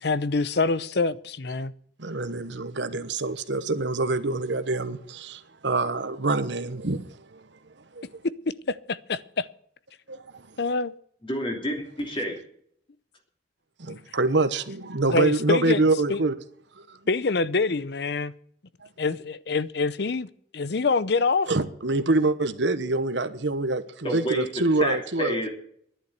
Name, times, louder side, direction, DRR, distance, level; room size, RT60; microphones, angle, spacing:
voice 1, 0.0-1.7 8.7-9.5 10.6-10.9 13.9-14.0 15.1-15.8 16.1-16.2 17.1-18.3 19.0-20.3 20.5-21.5, left 3 dB, 60° left, 0.6 m, -25 dB
voice 2, 2.0-7.4 7.9-8.0 10.1-10.5 13.8-16.3 16.8-17.0 18.8-18.9 21.5-25.5, right 2 dB, 70° right, 1.1 m, -26 dB
voice 3, 11.2-12.4 24.0-24.4 24.8-25.5, equal, 25° left, 2.9 m, -29 dB
11.5 x 10.0 x 8.1 m
head